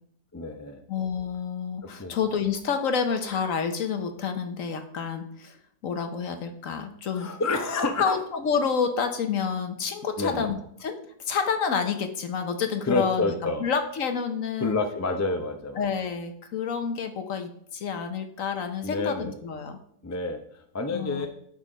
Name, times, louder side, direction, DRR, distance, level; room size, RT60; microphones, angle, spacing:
voice 1, 0.3-0.8 2.0-2.2 7.1-8.2 10.2-10.5 12.8-13.6 14.6-15.9 18.8-19.4 20.0-21.3, left 3 dB, 25° left, 6 dB, 0.3 m, -29 dB
voice 2, 0.9-5.6 5.8-7.3 8.0-11.0 11.3-14.8 15.8-19.8 20.9-21.3, left 6 dB, 60° left, 7 dB, 1.2 m, -29 dB
11.0 x 4.2 x 5.0 m, 0.67 s
omnidirectional pair, 1.7 m